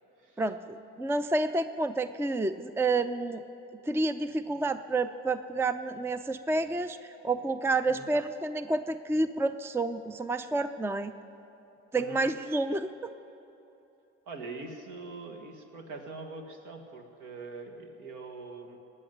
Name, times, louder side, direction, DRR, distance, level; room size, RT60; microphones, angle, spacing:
voice 1, 0.4-3.4 3.8-11.1 11.9-13.1, right 2 dB, 5° right, 12 dB, 0.5 m, -29 dB
voice 2, 11.9-12.6 14.3-18.8, right 3 dB, 65° right, 3 dB, 1.9 m, -43 dB
19.0 x 6.5 x 9.3 m, 3.0 s
hypercardioid pair, 55°, 33 cm